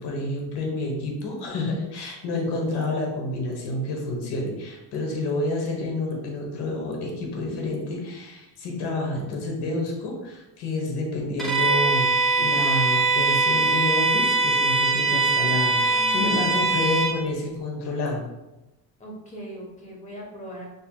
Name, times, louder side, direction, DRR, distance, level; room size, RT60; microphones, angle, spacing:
voice 1, 0.0-18.3, left 2 dB, 65° left, 0 dB, 1.2 m, -29 dB
Bowed string instrument, 11.4-17.2, right 3 dB, ahead, 0.5 m, -22 dB
voice 2, 15.8-16.6 19.0-20.7, right 2 dB, 15° left, -2 dB, 1.0 m, -39 dB
6.2 x 2.9 x 2.3 m, 1.0 s
cardioid pair, 155°, 43 cm